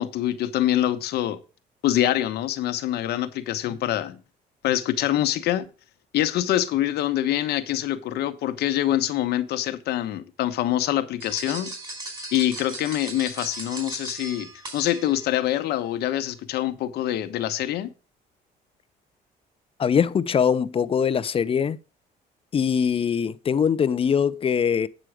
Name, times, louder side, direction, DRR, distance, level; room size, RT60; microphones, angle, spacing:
voice 1, 0.0-1.4 1.8-4.2 4.6-5.7 6.1-11.7 12.3-17.9, left 12 dB, 75° left, 1.1 m, -25 dB
sound 1, 11.2-15.5, right 2 dB, 25° right, 4.4 m, -37 dB
voice 2, 19.8-21.8 22.5-24.9, left 7 dB, 35° left, 0.6 m, -22 dB
9.1 x 6.2 x 4.8 m
cardioid pair, 110°, 17 cm